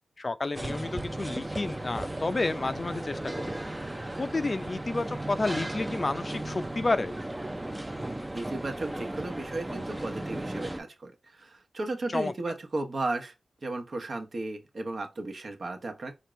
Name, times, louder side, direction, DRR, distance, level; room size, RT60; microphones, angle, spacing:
voice 1, 0.2-3.6 4.2-7.1 12.1-12.3, left 3 dB, 40° left, 0.4 m, -30 dB
sound 1, 0.5-10.8, right 1 dB, 15° right, 0.5 m, -36 dB
voice 2, 8.3-13.3 13.6-16.1, right 2 dB, 60° right, 1.0 m, -35 dB
4.4 x 2.5 x 3.1 m
cardioid pair, 60°, 0 cm